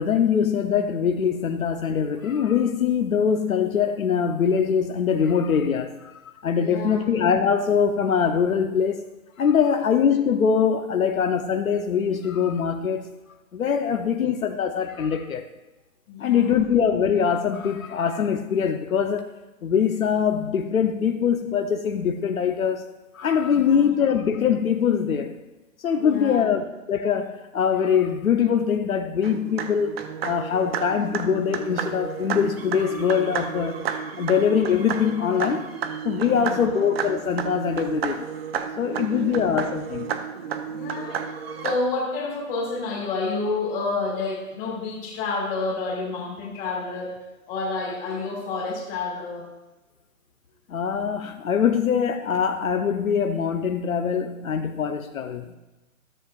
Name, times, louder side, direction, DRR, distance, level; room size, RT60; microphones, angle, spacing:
voice 1, 0.0-9.0 9.4-13.1 13.5-15.5 16.2-19.3 19.6-22.9 23.1-25.4 25.8-29.9 30.2-33.8 34.2-35.7 36.0-38.3 38.8-40.1 50.7-55.6, left 7 dB, 75° left, 6 dB, 0.9 m, -23 dB
voice 2, 6.5-7.0 16.1-16.5 23.5-23.9 25.9-26.6 36.3-36.7 38.9-39.4 40.4-41.2 41.6-47.2 47.5-49.5, left 3 dB, 20° left, -2 dB, 2.1 m, -29 dB
sound 1, 29.2-41.8, right 7 dB, 45° right, 0.8 m, -32 dB
13.5 x 7.2 x 2.5 m, 1.1 s
hypercardioid pair, 150°, 42 cm